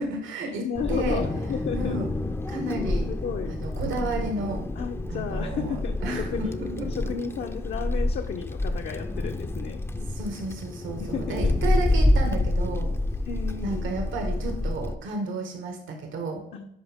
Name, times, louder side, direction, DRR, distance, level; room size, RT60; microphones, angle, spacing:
voice 1, 0.0-1.2 1.7-2.1 2.5-3.1 3.5-4.6 5.1-6.9 9.9-12.9 13.6-16.4, right 2 dB, 75° right, 3 dB, 1.8 m, -32 dB
voice 2, 0.6-2.0 3.1-3.6 4.8-9.8 11.0-11.6 13.3-13.9 16.5-16.7, left 6 dB, 60° left, 3 dB, 0.8 m, -33 dB
Wind, 0.7-14.9, left 1 dB, 10° left, 0.6 m, -28 dB
11.5 x 4.7 x 3.6 m, 0.80 s
cardioid pair, 90°, 20 cm